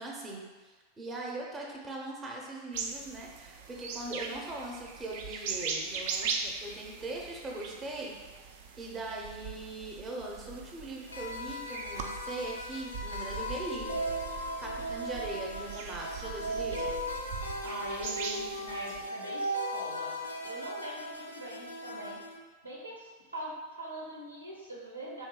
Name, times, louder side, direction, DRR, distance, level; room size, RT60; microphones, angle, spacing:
voice 1, 0.0-8.2 8.8-14.0 14.6-16.9, right 2 dB, 20° right, -2 dB, 0.6 m, -40 dB
sound 1, 2.7-19.1, right 5 dB, 50° right, 0.4 m, -40 dB
sound 2, 11.1-22.4, equal, 85° left, 0.4 m, -37 dB
voice 2, 17.6-20.2 20.4-22.2 22.6-23.5 23.8-25.3, right 1 dB, 85° right, -3 dB, 0.8 m, -42 dB
3.2 x 2.6 x 3.7 m, 1.3 s
figure-of-eight pair, 90°, 0 cm